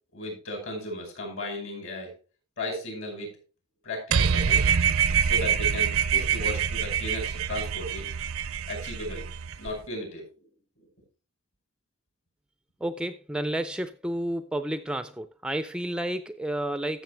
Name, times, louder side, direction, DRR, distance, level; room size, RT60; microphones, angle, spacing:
voice 1, 0.1-2.1 2.6-3.4 3.8-4.6 5.2-8.1 8.7-9.3 9.6-10.5, left 1 dB, 60° left, 5.4 m, -35 dB
sound 1, 4.1-9.7, right 7 dB, 65° right, 0.5 m, -25 dB
voice 2, 12.8-17.0, right 1 dB, 5° right, 0.4 m, -31 dB
13.5 x 7.2 x 3.3 m
head